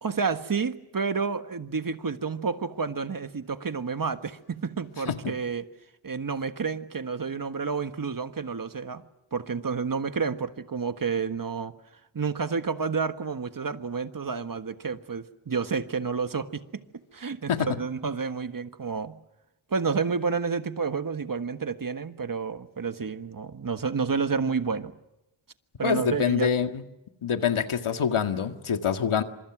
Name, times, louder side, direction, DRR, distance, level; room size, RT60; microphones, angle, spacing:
voice 1, 0.0-5.7 6.0-9.0 9.3-11.7 12.1-16.8 17.1-19.2 19.7-24.9 25.8-26.5, right 5 dB, 45° right, 9 dB, 1.5 m, -30 dB
voice 2, 25.8-26.8 27.2-29.2, left 7 dB, 85° left, 7 dB, 2.0 m, -25 dB
29.0 x 26.5 x 6.1 m, 0.90 s
wide cardioid pair, 105°, 48 cm